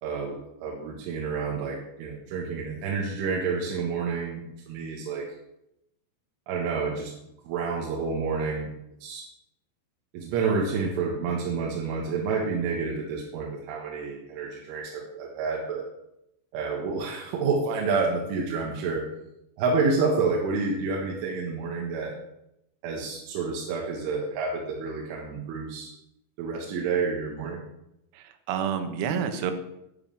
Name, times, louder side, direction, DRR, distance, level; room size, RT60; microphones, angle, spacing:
voice 1, 0.0-5.3 6.5-7.1 7.5-8.7 9.0-9.3 10.1-15.9 16.5-19.1 19.6-22.2 22.8-25.9 26.4-27.6, right 4 dB, 75° right, 0 dB, 3.8 m, -29 dB
voice 2, 28.1-29.5, right 8 dB, 90° right, 8 dB, 4.1 m, -29 dB
11.0 x 10.5 x 7.6 m, 0.84 s
omnidirectional pair, 5.9 m